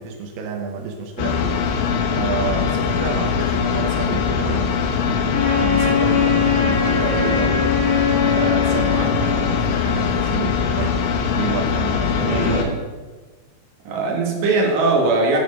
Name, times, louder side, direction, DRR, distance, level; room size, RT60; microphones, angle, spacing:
voice 1, 0.0-1.6 2.1-7.7 8.2-11.0 11.3-12.8, right 5 dB, 90° right, 2 dB, 2.1 m, -29 dB
sound 1, 1.2-12.6, left 6 dB, 75° left, 2.9 m, -22 dB
Wind instrument woodwind instrument, 5.3-9.7, left 6 dB, 45° left, 1.2 m, -21 dB
voice 2, 12.2-12.8 13.8-15.4, right 3 dB, 60° right, -1 dB, 2.5 m, -20 dB
10.5 x 4.7 x 5.3 m, 1.3 s
omnidirectional pair, 5.6 m